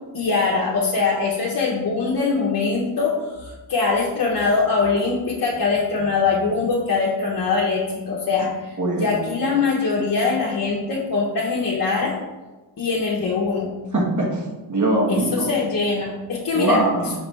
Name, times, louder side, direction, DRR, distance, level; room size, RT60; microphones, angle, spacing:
voice 1, 0.1-12.1 12.8-13.7 15.1-16.8, left 4 dB, 55° left, -3 dB, 0.7 m, -22 dB
voice 2, 8.8-9.1 13.9-14.4 14.7-15.5 16.5-17.2, right 1 dB, 45° right, -2 dB, 1.1 m, -21 dB
5.1 x 3.2 x 3.1 m, 1.2 s
wide cardioid pair, 80°, 41 cm